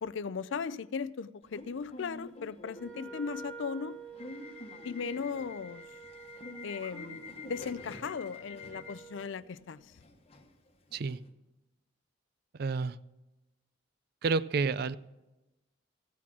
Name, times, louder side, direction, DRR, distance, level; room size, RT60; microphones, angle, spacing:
voice 1, 0.0-4.0 4.8-5.8 6.6-9.8, left 5 dB, 70° left, 0.4 m, -37 dB
Subway metro underground / Alarm, 1.4-11.3, left 3 dB, 30° left, 1.1 m, -47 dB
Wind instrument woodwind instrument, 2.7-9.4, right 5 dB, 5° right, 1.4 m, -50 dB
sound 1, 6.4-7.1, right 4 dB, 35° right, 1.3 m, -58 dB
voice 2, 12.5-13.0 14.2-15.0, right 4 dB, 50° right, 0.4 m, -30 dB
15.5 x 8.5 x 6.0 m
head